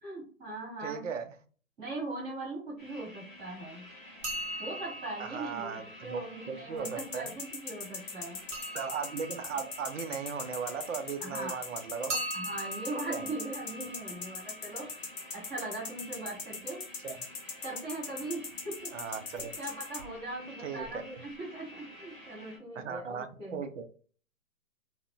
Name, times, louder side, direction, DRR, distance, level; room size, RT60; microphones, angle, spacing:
voice 1, 0.0-1.0 1.8-3.9 4.6-8.4 11.2-11.6 12.3-14.8 15.5-16.8 17.6-18.9 19.4-23.6, right 2 dB, 20° right, 1.2 m, -40 dB
voice 2, 0.8-1.2 5.2-7.3 8.7-12.2 13.1-13.2 17.0-17.2 18.9-19.5 20.6-20.9 22.8-23.8, right 6 dB, 60° right, 0.5 m, -37 dB
sound 1, 2.8-22.6, left 1 dB, 10° left, 0.4 m, -51 dB
sound 2, 4.2-6.9 8.5-11.2 12.1-15.9 19.4-19.7 20.0-20.1 20.8-20.9 21.2-21.3, right 1 dB, 40° right, 1.4 m, -42 dB
sound 3, 6.8-20.0, left 4 dB, 50° left, 0.8 m, -39 dB
3.5 x 2.1 x 2.2 m
hypercardioid pair, 145°, 42 cm